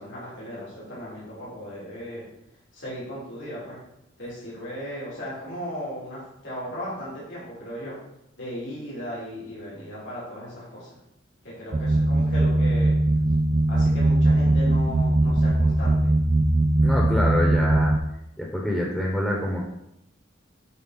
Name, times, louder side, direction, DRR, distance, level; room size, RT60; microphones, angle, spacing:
voice 1, 0.0-2.2 2.7-3.8 4.2-7.9 8.4-10.9 11.4-12.9 13.7-16.1, equal, 75° left, -7 dB, 2.9 m, -36 dB
sound 1, 11.7-18.0, right 2 dB, 30° right, 0.4 m, -20 dB
voice 2, 16.8-18.0 18.4-19.6, left 1 dB, 5° left, -3 dB, 1.0 m, -26 dB
8.0 x 4.5 x 4.1 m, 0.84 s
head